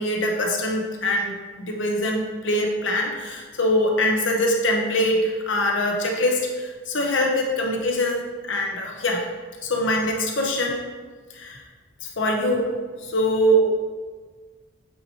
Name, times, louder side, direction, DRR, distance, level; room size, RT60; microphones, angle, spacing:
voice 1, 0.0-8.2 8.5-9.2 9.6-10.8 11.3-11.6 12.2-12.7 13.0-13.7, equal, 65° left, 0 dB, 0.9 m, -23 dB
8.2 x 3.1 x 4.3 m, 1.4 s
head